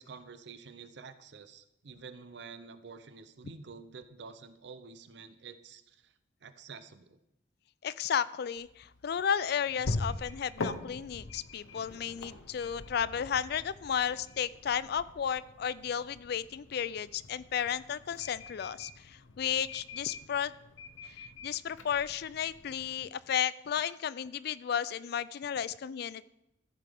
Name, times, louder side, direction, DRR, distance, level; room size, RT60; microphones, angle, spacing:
voice 1, 0.0-6.1 6.4-7.2, right 5 dB, 60° right, 11 dB, 0.6 m, -49 dB
voice 2, 7.8-20.5 21.0-26.2, left 8 dB, 55° left, 17 dB, 0.3 m, -33 dB
sound 1, 8.6-22.9, left 2 dB, 85° left, 0.9 m, -43 dB
13.5 x 7.5 x 3.5 m, 0.85 s
head